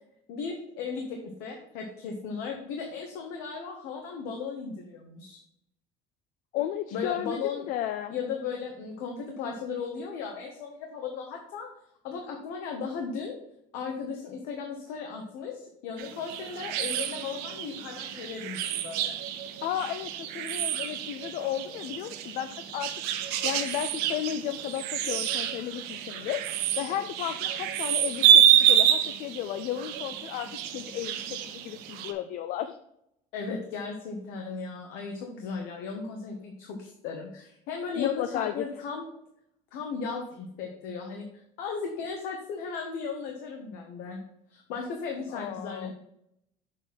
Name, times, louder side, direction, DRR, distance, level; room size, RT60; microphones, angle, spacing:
voice 1, 0.3-5.4 6.9-7.6 8.1-11.7 12.0-13.4 13.7-19.2 33.3-39.0 39.7-41.2 41.6-44.2 44.5-45.9, left 5 dB, 80° left, 2 dB, 1.3 m, -36 dB
voice 2, 6.5-8.1 19.6-22.9 23.2-32.8 38.0-38.6 45.3-45.9, left 11 dB, 60° left, 10 dB, 0.5 m, -34 dB
sound 1, 16.0-32.1, right 10 dB, 85° right, 0.9 m, -27 dB
7.1 x 4.3 x 5.6 m, 0.76 s
cardioid pair, 150°, 15 cm